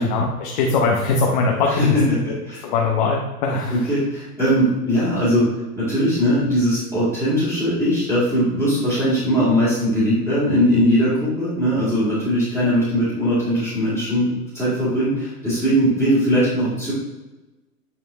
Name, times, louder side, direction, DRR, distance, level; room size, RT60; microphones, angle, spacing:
voice 1, 0.0-2.0 2.6-3.9, left 4 dB, 30° left, -1 dB, 0.7 m, -21 dB
voice 2, 1.7-2.6 3.7-5.4 5.7-16.9, equal, 5° right, -13 dB, 2.4 m, -20 dB
9.1 x 4.4 x 3.3 m, 1.1 s
hypercardioid pair, 155°, 47 cm